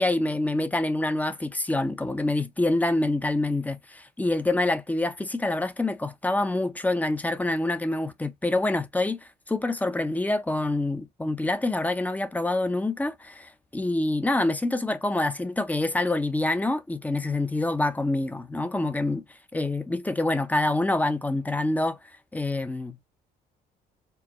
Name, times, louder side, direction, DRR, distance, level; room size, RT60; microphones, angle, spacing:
voice 1, 0.0-19.2 19.5-22.0 22.3-23.1, left 2 dB, 10° left, 0.6 m, -26 dB
4.6 x 2.2 x 3.0 m
cardioid pair, 100°, 17 cm